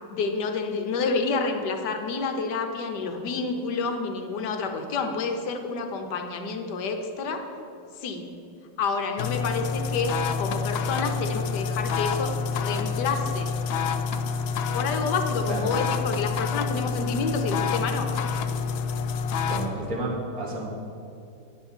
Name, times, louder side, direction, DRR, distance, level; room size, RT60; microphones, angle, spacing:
voice 1, 0.1-7.5 8.0-8.3 8.8-13.5 14.7-18.1, left 4 dB, 65° left, 5 dB, 1.3 m, -29 dB
sound 1, 9.2-19.7, left 5 dB, 80° left, 1.3 m, -28 dB
voice 2, 19.5-20.6, right 2 dB, 50° right, -2 dB, 2.1 m, -31 dB
9.9 x 5.9 x 7.0 m, 2.7 s
omnidirectional pair, 2.1 m